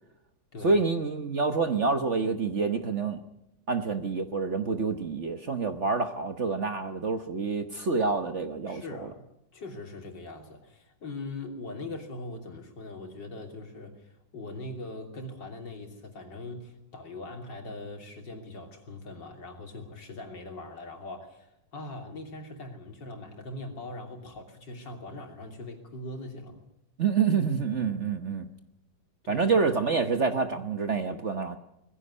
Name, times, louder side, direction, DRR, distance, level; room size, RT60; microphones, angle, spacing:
voice 1, 0.6-3.2 3.7-8.8 27.0-28.5 29.3-31.6, right 4 dB, 45° right, 8 dB, 1.2 m, -27 dB
voice 2, 8.7-9.2 9.5-26.6 29.2-29.4, left 2 dB, 65° left, 3 dB, 3.7 m, -41 dB
20.5 x 15.5 x 9.8 m, 0.84 s
omnidirectional pair, 2.1 m